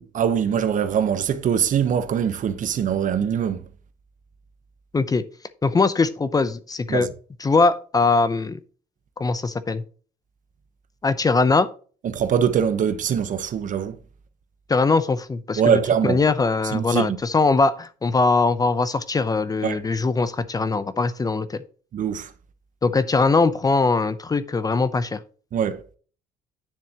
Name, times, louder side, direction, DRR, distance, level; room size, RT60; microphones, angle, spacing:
voice 1, 0.1-3.6 6.9-7.1 12.0-14.0 15.6-16.2 16.6-17.2 19.6-19.8 21.9-22.3 25.5-25.8, right 8 dB, 50° right, 1.0 m, -22 dB
voice 2, 4.9-5.2 5.6-7.1 7.4-8.6 9.2-9.8 11.0-11.7 14.7-21.6 22.8-25.2, left 3 dB, 20° left, 0.6 m, -21 dB
9.6 x 7.0 x 2.9 m
cardioid pair, 110°, 17 cm